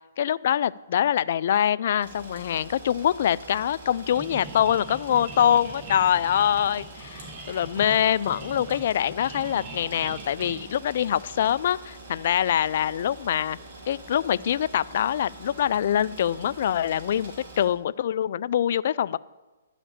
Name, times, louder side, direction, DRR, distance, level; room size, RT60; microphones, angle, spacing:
voice 1, 0.2-13.6 13.9-19.2, left 10 dB, 55° left, 18 dB, 0.3 m, -24 dB
sound 1, 2.0-17.7, right 2 dB, 55° right, 3.2 m, -45 dB
sound 2, 4.1-11.6, right 4 dB, 35° right, 2.5 m, -42 dB
12.0 x 5.0 x 8.3 m, 1.2 s
hypercardioid pair, 155°, 0 cm